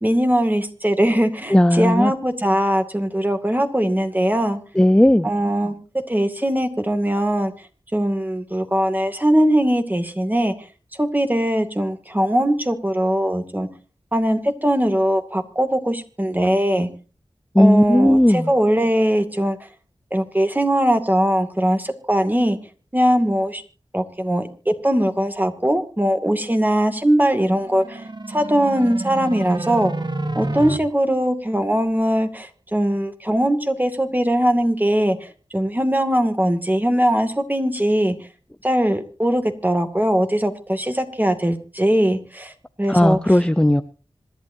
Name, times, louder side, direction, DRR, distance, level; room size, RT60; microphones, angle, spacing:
voice 1, 0.0-4.6 5.2-5.7 6.1-7.5 7.9-10.5 11.0-13.7 14.1-16.9 17.6-19.6 20.1-22.6 22.9-23.6 23.9-29.9 30.4-38.2 38.6-42.5 42.8-43.2, equal, 15° right, 7 dB, 2.4 m, -20 dB
voice 2, 1.5-2.1 4.8-5.3 17.5-18.5 42.9-43.8, left 1 dB, 10° left, 10 dB, 0.7 m, -15 dB
sound 1, 27.4-30.8, right 2 dB, 45° right, 1.5 m, -29 dB
26.0 x 11.5 x 2.8 m, 0.35 s
wide cardioid pair, 50°, 11 cm